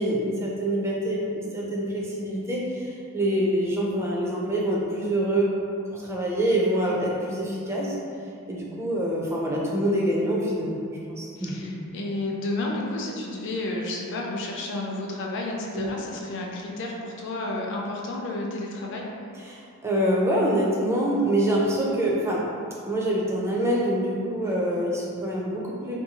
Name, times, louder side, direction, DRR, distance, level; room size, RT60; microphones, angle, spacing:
voice 1, 0.0-2.9 3.1-5.5 5.9-7.9 8.5-10.8 11.1-11.7 15.7-15.9 19.5-22.4 22.9-26.0, right 1 dB, 10° right, -4 dB, 0.4 m, -25 dB
voice 2, 11.4-19.1, left 2 dB, 55° left, -1 dB, 0.5 m, -31 dB
2.7 x 2.6 x 2.8 m, 2.5 s
head